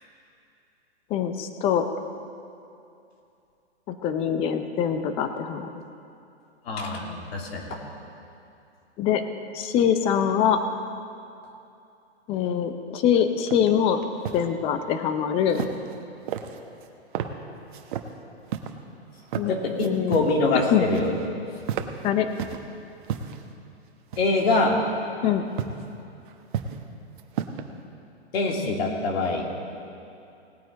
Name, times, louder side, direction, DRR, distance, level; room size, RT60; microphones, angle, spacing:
voice 1, 1.1-1.9 3.9-5.7 9.0-9.2 9.5-10.6 12.3-14.0 14.3-15.7 19.3-19.5 19.8-20.2 20.7-20.8 22.0-22.3 25.2-25.5, left 8 dB, 15° left, 8 dB, 0.6 m, -23 dB
voice 2, 6.6-7.8 19.5-21.1 24.2-24.8 28.3-29.5, left 3 dB, 60° left, 0 dB, 2.7 m, -24 dB
sound 1, 13.5-13.7 14.0-14.4 15.5-16.0 16.3-16.9 17.1-17.3 17.7-18.1 18.5-18.7 19.2-19.5 19.8-20.4 20.7-21.3 21.6-22.6 23.0-23.4 24.1-24.6 25.6-25.8 26.3-26.9 27.2-27.7, right 9 dB, 45° right, 1.0 m, -32 dB
19.0 x 9.0 x 4.0 m, 2.6 s
hypercardioid pair, 140°, 34 cm